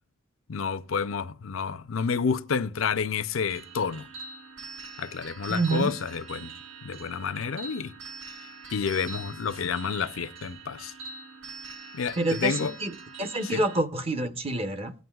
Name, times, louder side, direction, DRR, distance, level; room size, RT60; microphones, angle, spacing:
voice 1, 0.5-4.1 5.0-6.5 6.8-7.9 8.7-10.9 11.9-12.7 13.4-13.6, left 5 dB, 80° left, 0.6 m, -29 dB
sound 1, 3.5-13.8, right 4 dB, 65° right, 1.4 m, -43 dB
voice 2, 5.5-5.9 12.2-12.5 12.8-12.9 13.2-14.9, right 2 dB, 30° right, 0.8 m, -27 dB
17.5 x 9.3 x 2.4 m
head